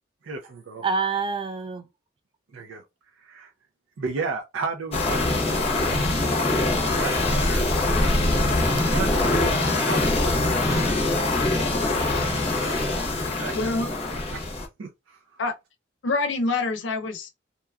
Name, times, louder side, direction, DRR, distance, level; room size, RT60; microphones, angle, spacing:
voice 1, 0.2-0.8 2.5-2.8 3.2-3.5 4.0-6.0 6.4-7.7 8.8-11.2 12.1-12.7 13.2-13.5 14.3-14.4 14.8-15.4, right 4 dB, 85° right, 0.5 m, -34 dB
voice 2, 0.8-1.9 7.7-8.8, right 4 dB, 25° right, 0.3 m, -29 dB
sound 1, 4.9-14.7, left 2 dB, 30° left, 0.7 m, -23 dB
voice 3, 13.5-13.9 15.4-15.5 16.0-17.3, left 3 dB, 75° left, 0.6 m, -26 dB
2.8 x 2.3 x 2.3 m
head